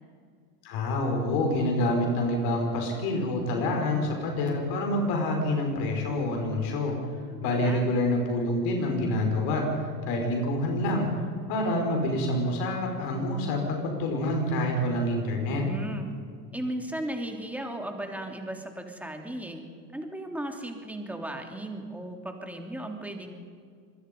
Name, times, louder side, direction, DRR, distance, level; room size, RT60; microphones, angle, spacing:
voice 1, 0.6-6.9 7.4-11.1 11.5-15.6, left 1 dB, 50° left, 2 dB, 5.3 m, -27 dB
voice 2, 7.2-7.9 15.4-16.1 16.5-19.6 19.9-23.3, right 1 dB, 5° right, 3 dB, 3.1 m, -36 dB
25.5 x 21.0 x 5.4 m, 2.2 s
supercardioid pair, 115°, 48 cm